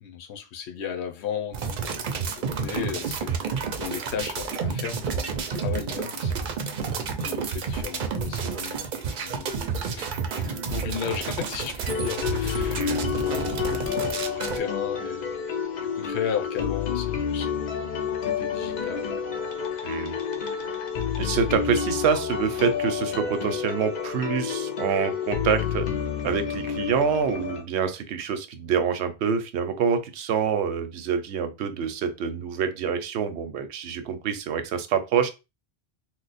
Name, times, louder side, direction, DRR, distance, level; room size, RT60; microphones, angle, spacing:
voice 1, 0.0-2.1 2.4-6.3 6.6-6.7 7.2-9.5 9.9-15.4 15.8-17.7 18.2-19.2 19.8-20.2, left 8 dB, 85° left, 0.9 m, -35 dB
sound 1, 1.5-14.6, right 5 dB, 60° right, 0.6 m, -30 dB
sound 2, 11.9-27.6, left 7 dB, 50° left, 0.6 m, -29 dB
voice 2, 12.7-13.1 19.8-20.2 21.2-25.9 26.2-35.3, right 7 dB, 85° right, 0.9 m, -26 dB
3.0 x 2.0 x 4.0 m
omnidirectional pair, 1.1 m